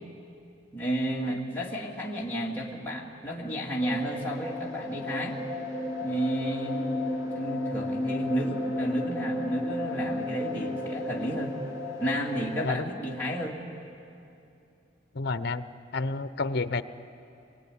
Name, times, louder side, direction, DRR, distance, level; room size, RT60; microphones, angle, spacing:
voice 1, 0.7-5.4 6.0-7.0 7.3-11.6 12.0-13.6, right 1 dB, 10° left, -5 dB, 2.3 m, -32 dB
sound 1, 3.8-12.7, left 1 dB, 20° right, 4.0 m, -33 dB
voice 2, 15.1-15.6 15.9-16.8, left 3 dB, 60° left, 13 dB, 0.9 m, -29 dB
26.5 x 22.0 x 10.0 m, 2.7 s
head